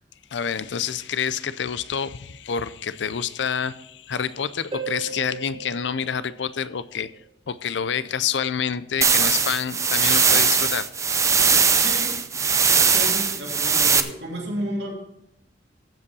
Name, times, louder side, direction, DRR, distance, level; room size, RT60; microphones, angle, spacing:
voice 1, 0.3-7.1 7.5-10.9, left 7 dB, 70° left, 15 dB, 0.5 m, -28 dB
Harp, 4.7-7.2 10.7-10.8, right 5 dB, 30° right, 1.4 m, -37 dB
sound 1, 9.0-14.0, right 5 dB, 15° right, 0.5 m, -20 dB
voice 2, 11.7-14.9, right 1 dB, 65° right, -2 dB, 3.1 m, -33 dB
15.0 x 5.4 x 5.5 m, 0.77 s
head